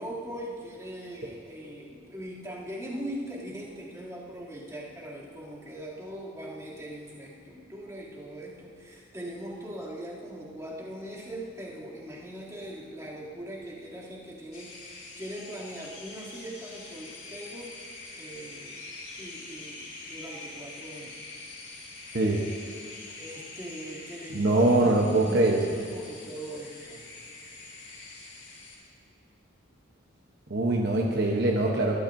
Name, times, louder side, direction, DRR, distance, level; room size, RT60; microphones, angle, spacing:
voice 1, 0.0-18.8 19.2-21.4 23.1-27.0, right 1 dB, 15° right, -7 dB, 2.9 m, -40 dB
sound 1, 14.5-28.8, left 3 dB, 40° left, 3.3 m, -45 dB
voice 2, 22.1-22.5 24.3-25.6 30.5-32.0, right 2 dB, 55° right, -1 dB, 1.0 m, -23 dB
21.5 x 13.5 x 2.7 m, 2.4 s
head